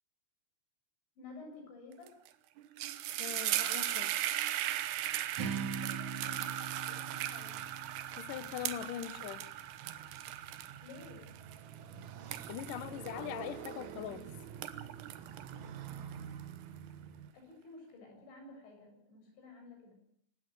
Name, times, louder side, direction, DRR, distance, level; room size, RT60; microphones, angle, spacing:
voice 1, 1.2-2.1 5.7-6.5 6.9-7.7 10.8-11.2 17.3-20.0, left 3 dB, 65° left, 2 dB, 9.6 m, -52 dB
sound 1, 2.1-2.3 2.6-14.1 14.5-16.4, right 13 dB, 70° right, 2.8 m, -38 dB
voice 2, 3.2-4.2 6.9-7.1 8.2-9.5 11.9-12.1 12.5-14.3, left 12 dB, 80° left, 14 dB, 1.9 m, -42 dB
Motorcycle, 4.8-17.3, right 8 dB, 90° right, 1.6 m, -49 dB
Acoustic guitar, 5.4-9.6, right 5 dB, 45° right, 3.5 m, -42 dB
27.0 x 15.5 x 7.9 m, 0.65 s
omnidirectional pair, 5.6 m